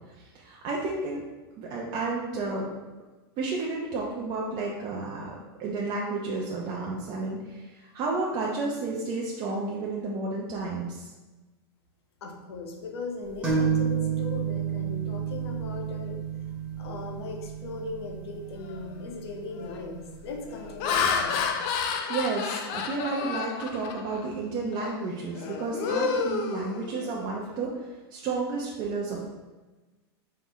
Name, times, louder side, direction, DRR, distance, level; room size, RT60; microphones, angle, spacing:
voice 1, 0.2-1.2 1.6-2.7 3.4-5.3 5.6-11.1 22.1-29.3, right 3 dB, 35° right, -3 dB, 0.5 m, -31 dB
voice 2, 12.2-16.2 16.8-21.4, left 3 dB, 80° left, 2 dB, 0.8 m, -38 dB
sound 1, 13.4-20.9, right 7 dB, 10° right, 1.0 m, -31 dB
Laughter, 18.7-19.0 19.6-19.9 20.5-24.3 24.7-25.0 25.3-27.3, left 5 dB, 45° left, 0.4 m, -30 dB
4.2 x 2.0 x 3.8 m, 1.2 s
supercardioid pair, 135°, 13 cm